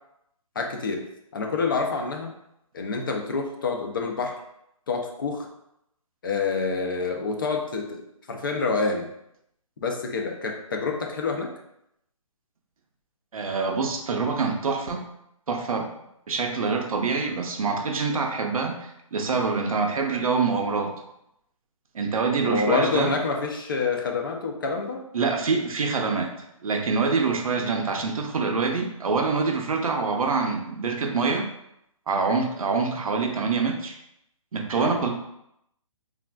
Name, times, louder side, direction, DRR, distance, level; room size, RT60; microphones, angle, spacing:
voice 1, 0.6-1.0 1.3-2.3 2.7-4.4 4.9-5.5 6.2-9.1 9.8-11.5 22.4-25.1 34.8-35.0, left 4 dB, 40° left, 3 dB, 0.4 m, -27 dB
voice 2, 13.3-15.0 15.5-15.9 16.3-20.9 21.9-23.2 25.1-26.3 26.6-31.5 32.1-34.0 34.5-35.1, right 4 dB, 80° right, 3 dB, 0.6 m, -25 dB
3.2 x 2.4 x 2.2 m, 0.79 s
hypercardioid pair, 165°, 18 cm